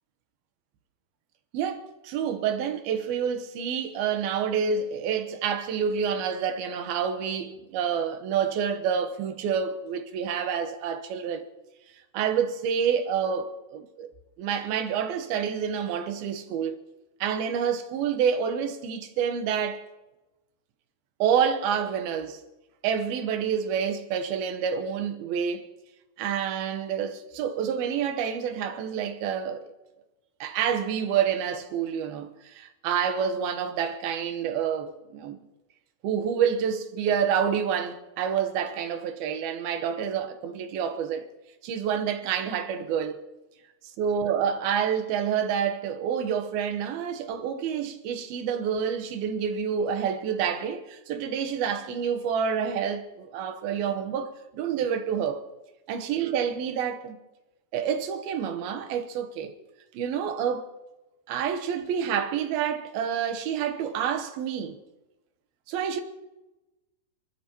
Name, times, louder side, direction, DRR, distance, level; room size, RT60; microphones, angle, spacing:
voice 1, 1.5-11.5 12.1-14.1 14.4-16.8 17.2-19.9 21.2-22.4 22.8-25.7 26.2-29.7 30.4-35.4 36.0-41.3 41.6-43.2 44.0-55.4 55.9-57.2 57.7-59.5 59.9-60.7 61.3-64.8 65.7-66.0, right 7 dB, 75° right, 2.9 m, -28 dB
29.0 x 12.5 x 3.0 m
omnidirectional pair, 4.5 m